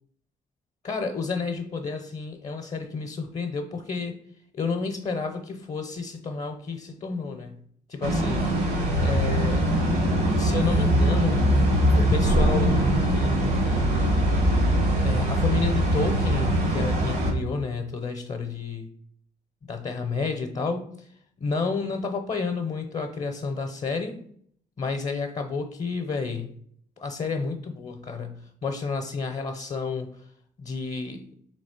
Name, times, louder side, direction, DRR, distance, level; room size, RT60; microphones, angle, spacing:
voice 1, 0.8-4.2 4.5-7.5 7.9-8.4 9.0-9.7 10.4-11.4 11.9-13.5 15.0-18.9 19.7-20.8 21.4-24.2 24.8-26.5 27.0-30.1 30.6-31.2, left 4 dB, 45° left, 4 dB, 0.6 m, -30 dB
sound 1, 8.0-17.3, right 1 dB, 75° right, 1.2 m, -22 dB
3.3 x 3.1 x 4.3 m, 0.62 s
supercardioid pair, 60°, 17 cm